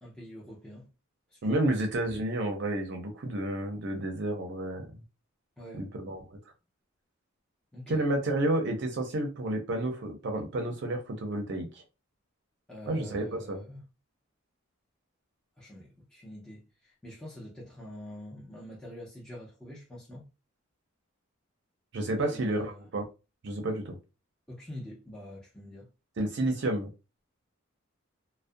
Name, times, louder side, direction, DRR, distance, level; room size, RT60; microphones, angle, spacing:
voice 1, 0.0-0.9 1.3-1.9 5.6-5.9 7.7-8.0 12.7-13.9 15.6-20.3 22.2-22.9 24.5-25.9, left 1 dB, 5° left, 0.5 m, -45 dB
voice 2, 1.4-4.8 5.7-6.4 7.9-11.8 12.9-13.6 21.9-23.0 23.4-24.0 26.2-26.9, right 1 dB, 55° right, 0.5 m, -30 dB
2.4 x 2.0 x 2.5 m
head